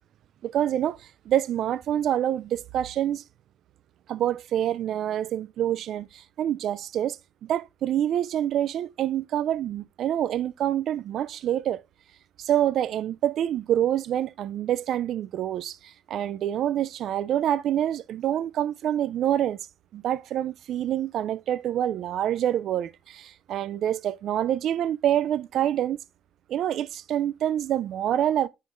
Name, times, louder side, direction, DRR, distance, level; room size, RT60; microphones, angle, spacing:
voice 1, 0.4-3.2 4.1-7.2 7.4-11.8 12.4-19.6 19.9-26.0 26.5-28.5, right 11 dB, 65° right, 0.3 m, -26 dB
9.4 x 6.5 x 2.6 m
supercardioid pair, 65°, 0 cm